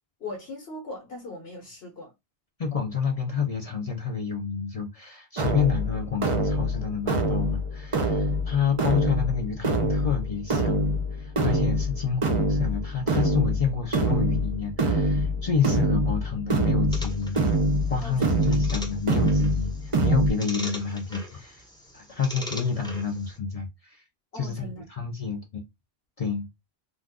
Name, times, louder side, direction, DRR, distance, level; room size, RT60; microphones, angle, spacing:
voice 1, 0.2-2.1 17.9-18.6 24.3-25.2, left 2 dB, 70° left, 1.2 m, -40 dB
voice 2, 2.6-17.4 17.9-21.6 21.9-24.0 24.3-25.6 26.2-26.5, left 6 dB, 45° left, 0.5 m, -29 dB
sound 1, 5.4-20.3, right 1 dB, 35° right, 0.6 m, -25 dB
sound 2, 16.9-23.4, left 1 dB, 5° left, 0.6 m, -41 dB
2.5 x 2.3 x 3.5 m
omnidirectional pair, 1.1 m